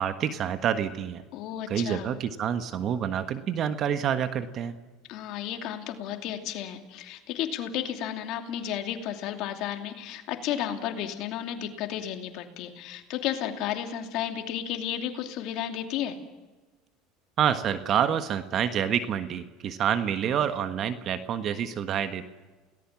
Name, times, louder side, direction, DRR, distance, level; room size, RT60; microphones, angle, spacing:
voice 1, 0.0-1.2 1.7-4.8 17.4-22.2, right 9 dB, 45° right, 10 dB, 1.4 m, -27 dB
voice 2, 1.3-2.1 5.1-16.2, left 10 dB, 60° left, 5 dB, 2.7 m, -33 dB
28.5 x 18.5 x 7.4 m, 1.3 s
supercardioid pair, 110°, 0 cm